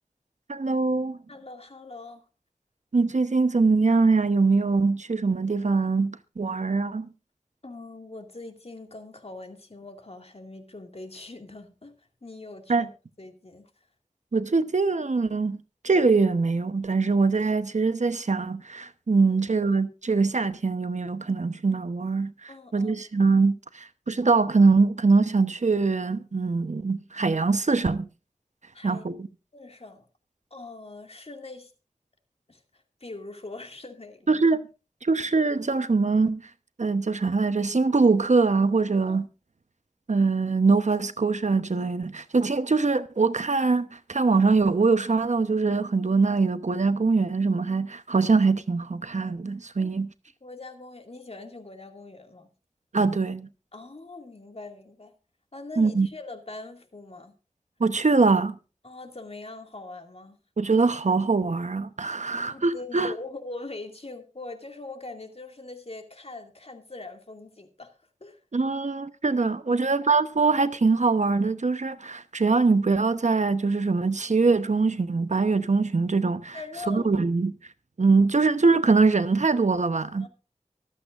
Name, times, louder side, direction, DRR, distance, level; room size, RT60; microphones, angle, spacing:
voice 1, 0.5-1.2 2.9-7.1 12.7-12.9 14.3-15.6 15.8-28.1 28.8-29.3 34.3-34.6 35.0-36.4 36.8-39.3 40.1-50.1 52.9-53.5 55.8-56.1 57.8-58.6 60.6-63.1 68.5-76.6 76.9-77.5 78.0-80.3, right 4 dB, 70° right, 0.9 m, -23 dB
voice 2, 1.3-2.2 7.6-12.9 13.2-13.9 19.3-19.7 22.5-23.1 28.7-29.0 29.5-30.1 30.5-31.7 32.5-34.4 39.1-39.2 49.8-49.9 50.4-52.5 53.7-55.1 55.5-57.3 58.8-60.4 62.3-68.4 69.7-69.9 76.5-77.1 80.2-80.3, left 2 dB, 55° left, 2.3 m, -42 dB
24.0 x 8.3 x 2.5 m
wide cardioid pair, 55°, 13 cm